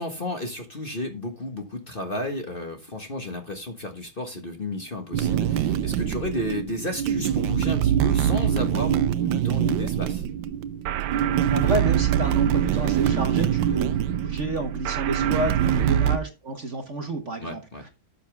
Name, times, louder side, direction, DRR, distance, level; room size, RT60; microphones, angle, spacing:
voice 1, 0.0-10.2 15.6-15.8 17.4-17.8, left 1 dB, 30° left, 1.5 m, -32 dB
sound 1, 5.1-16.2, right 10 dB, 75° right, 1.4 m, -24 dB
voice 2, 11.5-17.9, right 2 dB, 40° right, 1.5 m, -30 dB
12.5 x 7.1 x 3.5 m
omnidirectional pair, 2.1 m